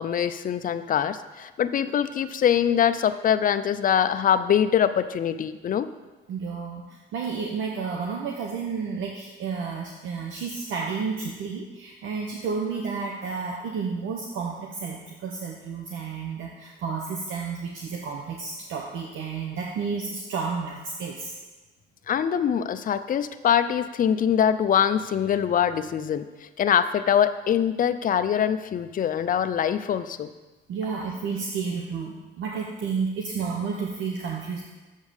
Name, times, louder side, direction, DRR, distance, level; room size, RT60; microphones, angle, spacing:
voice 1, 0.0-5.9 22.1-26.2 26.6-30.3, left 9 dB, 45° left, 11 dB, 0.5 m, -23 dB
voice 2, 6.3-21.4 30.7-34.7, right 5 dB, 75° right, 0 dB, 0.9 m, -31 dB
7.3 x 5.2 x 6.5 m, 1.2 s
cardioid pair, 90°, 20 cm